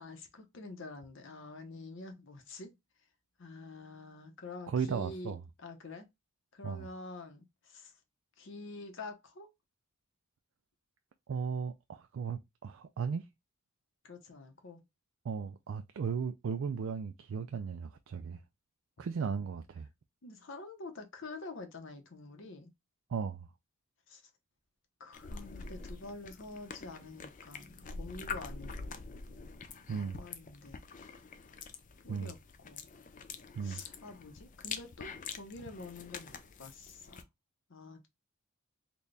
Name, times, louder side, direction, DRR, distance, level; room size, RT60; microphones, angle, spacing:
voice 1, 0.0-2.7 3.4-6.1 6.5-7.9 8.4-9.5 14.0-14.8 20.2-22.7 24.1-24.2 25.0-29.0 29.9-30.8 32.0-32.4 32.6-32.9 33.6-37.3 37.7-38.1, left 3 dB, 55° left, 0.7 m, -47 dB
voice 2, 4.7-5.4 6.6-6.9 11.3-13.3 15.2-18.4 19.0-19.9 23.1-23.5 29.9-30.2 32.1-32.3 33.6-33.8, right 6 dB, 60° right, 0.3 m, -36 dB
sound 1, 25.1-37.2, left 5 dB, 35° left, 0.4 m, -45 dB
4.0 x 2.3 x 3.2 m
head